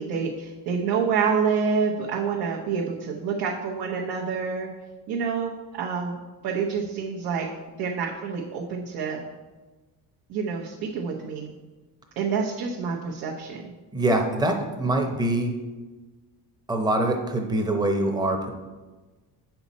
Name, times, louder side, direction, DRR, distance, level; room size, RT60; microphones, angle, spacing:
voice 1, 0.0-4.7 5.1-6.2 6.4-7.5 7.8-9.2 10.3-11.5 12.2-13.7, right 6 dB, 75° right, -2 dB, 1.1 m, -27 dB
voice 2, 13.9-15.5 16.7-18.5, right 1 dB, 10° right, 3 dB, 0.8 m, -24 dB
8.2 x 5.9 x 4.1 m, 1.2 s
cardioid pair, 160°, 38 cm